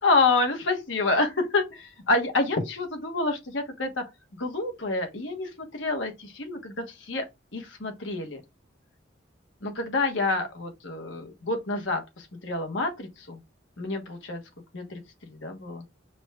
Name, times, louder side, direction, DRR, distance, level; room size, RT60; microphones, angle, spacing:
voice 1, 0.0-4.0 4.4-7.3 7.5-8.4 9.6-13.4 13.8-14.4 14.7-15.8, left 3 dB, 85° left, 1.3 m, -28 dB
5.1 x 2.4 x 3.4 m
head